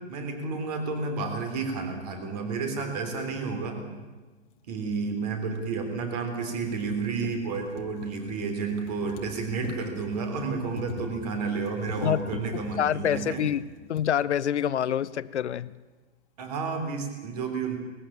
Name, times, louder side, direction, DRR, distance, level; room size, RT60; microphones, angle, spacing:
voice 1, 0.1-3.8 4.7-13.4 16.4-17.8, right 4 dB, 35° right, 6 dB, 3.5 m, -31 dB
sound 1, 4.5-4.6 5.6-5.7 6.1-6.2 6.5-14.1 15.0-15.1 15.3-15.4, left 5 dB, 30° left, 1.6 m, -42 dB
voice 2, 12.0-13.6 13.9-15.7, left 9 dB, 70° left, 18 dB, 0.8 m, -27 dB
20.5 x 14.5 x 8.7 m, 1.3 s
hypercardioid pair, 160°, 35 cm